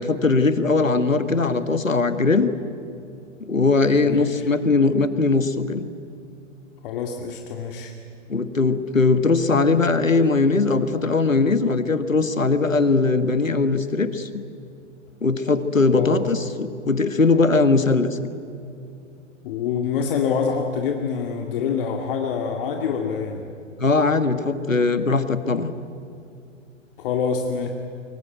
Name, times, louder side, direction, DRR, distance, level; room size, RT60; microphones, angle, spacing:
voice 1, 0.0-2.5 3.4-5.9 8.3-14.4 15.2-18.2 23.8-25.7, left 3 dB, 85° left, 11 dB, 1.7 m, -20 dB
voice 2, 4.1-4.4 6.8-7.9 16.0-16.2 19.4-23.4 27.0-27.7, left 6 dB, 45° left, 3 dB, 2.4 m, -26 dB
24.5 x 23.0 x 9.3 m, 2.5 s
figure-of-eight pair, 115°, 38 cm